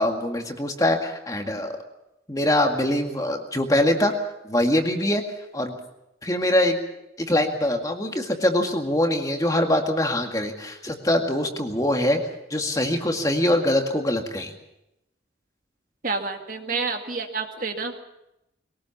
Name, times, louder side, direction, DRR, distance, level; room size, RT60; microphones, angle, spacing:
voice 1, 0.0-1.8 2.3-4.1 4.4-5.2 5.5-5.8 6.2-6.8 7.2-12.2 12.5-14.5, left 1 dB, 20° left, 3 dB, 2.0 m, -23 dB
voice 2, 16.0-17.9, right 4 dB, 45° right, 4 dB, 2.0 m, -29 dB
22.5 x 18.5 x 7.3 m, 0.89 s
head